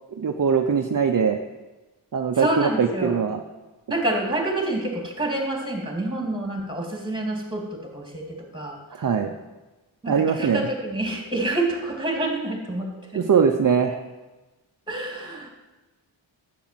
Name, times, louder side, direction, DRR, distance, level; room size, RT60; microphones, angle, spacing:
voice 1, 0.1-1.4 2.1-3.4 9.0-9.3 10.1-10.7 13.1-14.0, right 6 dB, 45° right, 4 dB, 0.7 m, -21 dB
voice 2, 2.3-3.2 3.9-8.8 10.0-13.2 14.9-15.5, right 1 dB, 10° right, 1 dB, 2.6 m, -27 dB
11.5 x 8.4 x 7.6 m, 1.1 s
wide cardioid pair, 120°, 47 cm